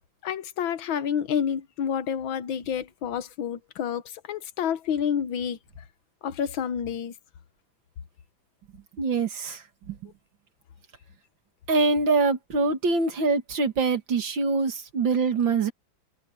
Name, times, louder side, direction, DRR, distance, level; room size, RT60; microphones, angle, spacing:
voice 1, 0.2-5.6 6.2-7.1, left 8 dB, 90° left, 1.8 m, -29 dB
voice 2, 9.0-10.1 11.7-15.7, right 4 dB, 75° right, 2.8 m, -24 dB
omnidirectional pair, 2.1 m